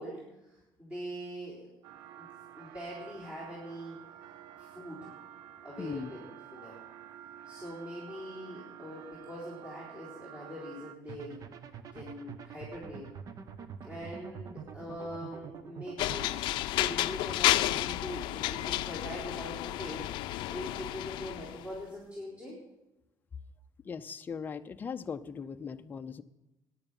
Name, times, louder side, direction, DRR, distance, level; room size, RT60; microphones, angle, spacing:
voice 1, 0.0-1.7 2.2-2.3 2.5-4.0 4.6-5.1 5.6-6.8 7.5-11.4 11.9-13.1 13.8-22.6, equal, 15° right, -7 dB, 3.8 m, -43 dB
sound 1, 1.8-11.0, right 11 dB, 80° right, 0.6 m, -50 dB
voice 2, 5.8-6.1 23.8-26.2, left 6 dB, 25° left, 8 dB, 0.5 m, -39 dB
sound 2, 11.1-16.3, right 7 dB, 50° right, 0.8 m, -46 dB
sound 3, 16.0-21.6, left 15 dB, 85° left, 0.5 m, -31 dB
14.5 x 9.9 x 5.4 m, 0.97 s
cardioid pair, 140°, 8 cm